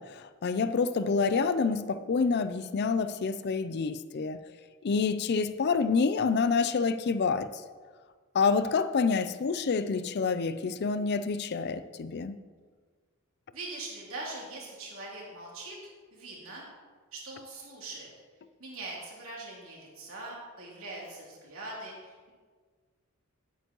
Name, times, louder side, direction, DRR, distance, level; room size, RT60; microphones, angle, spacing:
voice 1, 0.0-4.4 4.8-7.6 8.3-12.4, left 5 dB, 50° left, 0.4 m, -27 dB
voice 2, 13.5-16.6 17.1-18.1 18.6-22.3, right 2 dB, 75° right, 2.9 m, -42 dB
10.5 x 9.0 x 3.0 m
head